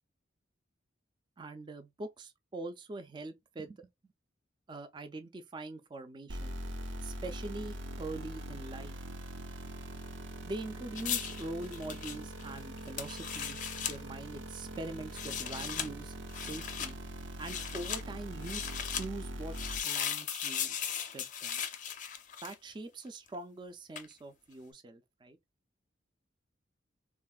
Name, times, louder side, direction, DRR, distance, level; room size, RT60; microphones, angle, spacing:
voice 1, 1.4-3.9 4.7-6.6 7.0-9.0 10.5-17.0 17.4-19.6 19.8-20.8 21.1-21.6 22.4-25.4, right 2 dB, 25° right, 0.3 m, -43 dB
sound 1, 6.3-19.8, right 1 dB, 75° right, 0.5 m, -43 dB
sound 2, 11.0-14.0 15.0-15.9 16.3-16.9 17.4-18.0 18.4-19.1 19.5-22.7 24.0-24.1, left 8 dB, 40° left, 0.4 m, -37 dB
3.5 x 2.4 x 2.2 m
head